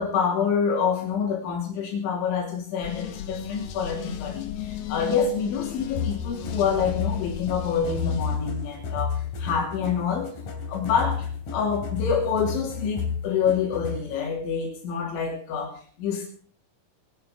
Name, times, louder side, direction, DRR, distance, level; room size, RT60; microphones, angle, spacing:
voice 1, 0.0-10.3 10.7-16.3, left 6 dB, 80° left, 0 dB, 5.2 m, -27 dB
sound 1, 2.8-8.9, left 9 dB, 65° left, 2.5 m, -36 dB
sound 2, 6.0-14.2, left 6 dB, 50° left, 4.2 m, -32 dB
21.5 x 11.0 x 5.1 m, 0.44 s
omnidirectional pair, 5.3 m